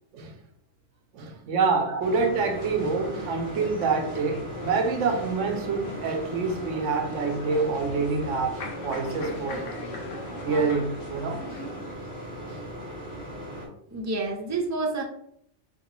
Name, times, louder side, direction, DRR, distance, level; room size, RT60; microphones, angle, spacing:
voice 1, 1.1-9.7 10.4-11.5 12.5-12.6, right 4 dB, 85° right, 1.0 m, -27 dB
sound 1, 2.0-13.7, right 1 dB, 15° left, 1.6 m, -39 dB
sound 2, 2.6-11.9, left 3 dB, 90° left, 1.1 m, -40 dB
voice 2, 13.9-15.0, right 3 dB, 20° right, 0.5 m, -29 dB
4.4 x 2.9 x 2.9 m
omnidirectional pair, 1.2 m